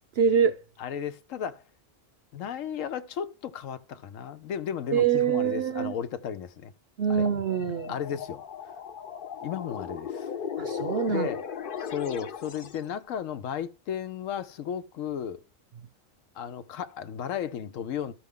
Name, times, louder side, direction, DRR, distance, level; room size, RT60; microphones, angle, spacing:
voice 1, 0.2-0.6 4.9-5.9 7.0-7.9 10.6-11.3, right 7 dB, 60° right, 0.8 m, -25 dB
voice 2, 0.8-1.6 2.3-6.7 7.1-7.3 7.9-8.4 9.4-10.3 11.1-11.4 11.9-15.4 16.3-18.1, left 8 dB, 85° left, 1.1 m, -34 dB
sound 1, 7.1-12.9, left 7 dB, 50° left, 0.8 m, -37 dB
13.0 x 5.0 x 3.6 m
omnidirectional pair, 1.3 m